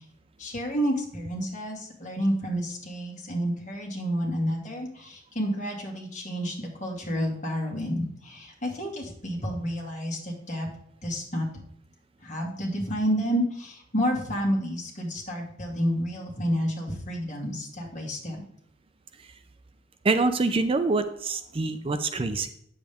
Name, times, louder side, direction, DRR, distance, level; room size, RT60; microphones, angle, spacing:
voice 1, 0.4-10.7 11.0-11.5 12.2-18.4, equal, 40° left, -1 dB, 2.2 m, -30 dB
voice 2, 20.0-22.5, right 3 dB, 30° right, 9 dB, 0.5 m, -25 dB
9.1 x 7.3 x 3.5 m, 0.71 s
head